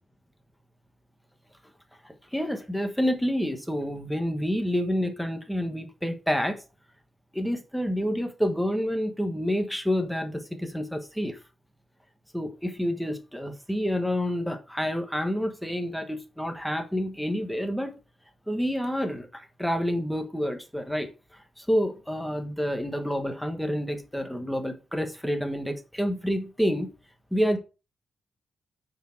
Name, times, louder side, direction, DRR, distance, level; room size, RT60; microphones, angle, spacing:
voice 1, 2.0-6.6 7.3-11.4 12.3-18.0 18.5-26.9 27.3-27.6, equal, ahead, 1.3 m, -28 dB
9.0 x 4.6 x 4.5 m
wide cardioid pair, 155°, 0 cm